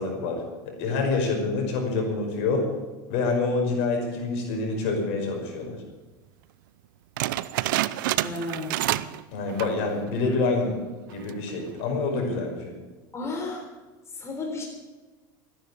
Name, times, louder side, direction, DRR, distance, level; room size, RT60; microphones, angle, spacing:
voice 1, 0.0-2.7 3.1-5.8 9.3-10.7 11.1-12.7, left 3 dB, 65° left, 2 dB, 5.3 m, -27 dB
sound 1, 7.2-9.2 9.5-9.9 10.3-10.4 11.1-11.5, right 16 dB, 80° right, 0.6 m, -28 dB
voice 2, 8.2-8.9 13.1-13.7 14.1-14.6, left 2 dB, 25° left, 1 dB, 3.8 m, -33 dB
14.5 x 10.5 x 8.4 m, 1.2 s
supercardioid pair, 105°, 11 cm